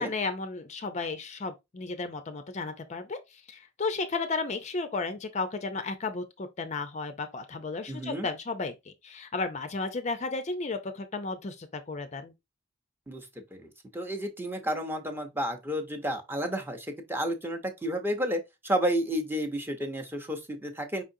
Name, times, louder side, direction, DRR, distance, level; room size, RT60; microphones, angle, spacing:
voice 1, 0.0-12.3, left 3 dB, 35° left, 0.5 m, -34 dB
voice 2, 7.9-8.3 13.1-13.3 13.5-21.0, equal, 10° right, 0.7 m, -31 dB
5.2 x 3.7 x 2.7 m
head